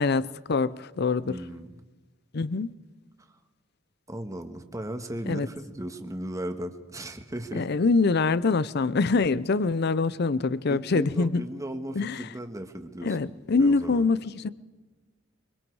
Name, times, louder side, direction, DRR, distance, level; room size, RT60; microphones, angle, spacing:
voice 1, 0.0-1.4 2.3-2.7 5.3-5.5 7.5-11.5 12.0-12.3 13.0-14.5, left 4 dB, 55° left, 0.6 m, -24 dB
voice 2, 1.2-1.8 3.2-3.3 4.1-7.7 10.7-14.0, right 1 dB, 15° right, 1.5 m, -36 dB
24.0 x 24.0 x 4.8 m
head